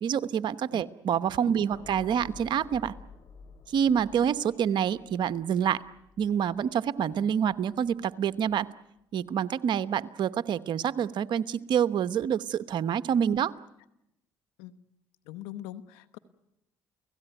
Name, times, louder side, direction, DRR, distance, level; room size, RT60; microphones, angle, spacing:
voice 1, 0.0-2.9 3.7-5.8 6.2-8.7 9.1-13.5, right 8 dB, 60° right, 13 dB, 1.0 m, -27 dB
sound 1, 1.7-8.0 8.4-8.7, left 4 dB, 50° left, 5.2 m, -52 dB
voice 2, 15.3-16.2, left 13 dB, 90° left, 12 dB, 1.3 m, -41 dB
30.0 x 17.5 x 9.2 m, 0.86 s
supercardioid pair, 75°, 9 cm